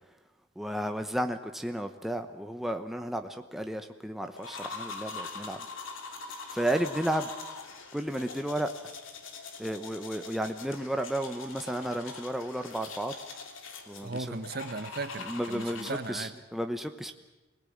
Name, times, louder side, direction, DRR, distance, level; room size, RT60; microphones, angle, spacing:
voice 1, 0.6-5.6 6.5-7.3 7.9-8.7 9.6-13.1 13.9-14.4 15.3-16.3 16.5-17.1, right 1 dB, ahead, 5 dB, 1.0 m, -33 dB
sound 1, 4.4-16.3, left 4 dB, 80° left, 2.5 m, -43 dB
voice 2, 14.0-16.3, right 3 dB, 50° right, 11 dB, 1.1 m, -37 dB
25.0 x 19.0 x 8.7 m, 1.1 s
head